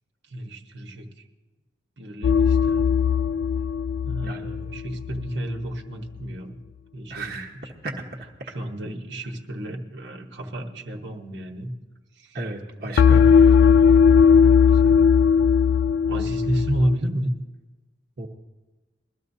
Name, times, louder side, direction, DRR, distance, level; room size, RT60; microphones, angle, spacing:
voice 1, 0.3-1.3 2.0-3.0 4.0-6.6 6.9-7.4 8.4-11.7 12.1-12.4 12.8-13.4 14.4-15.0 16.1-17.3, right 1 dB, 70° right, 2 dB, 1.3 m, -31 dB
sound 1, 2.2-5.3 13.0-17.0, left 6 dB, 75° left, 0.3 m, -18 dB
voice 2, 4.1-4.5 7.1-7.5 7.8-7.9 12.3-13.3 18.2-18.3, right 2 dB, 55° right, -1 dB, 1.2 m, -33 dB
22.0 x 13.5 x 2.8 m, 1.2 s
head